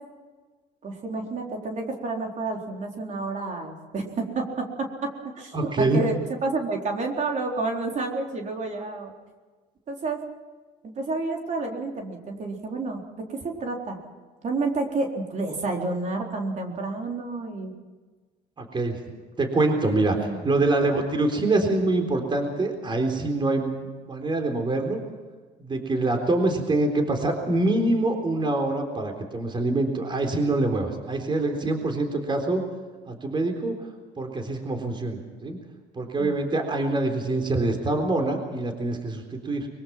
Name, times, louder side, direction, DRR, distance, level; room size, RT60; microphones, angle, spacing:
voice 1, 0.8-5.1 5.4-6.1 6.4-9.1 9.9-10.2 10.8-14.0 14.4-17.7 20.1-20.4 36.2-36.4, right 3 dB, 45° right, 1 dB, 4.0 m, -30 dB
voice 2, 5.5-6.0 18.6-19.0 19.4-25.0 25.6-32.6 33.1-33.7 34.2-35.6 36.0-39.7, right 2 dB, 30° right, 4 dB, 3.9 m, -25 dB
24.0 x 23.0 x 6.0 m, 1.4 s
cardioid pair, 110°, 17 cm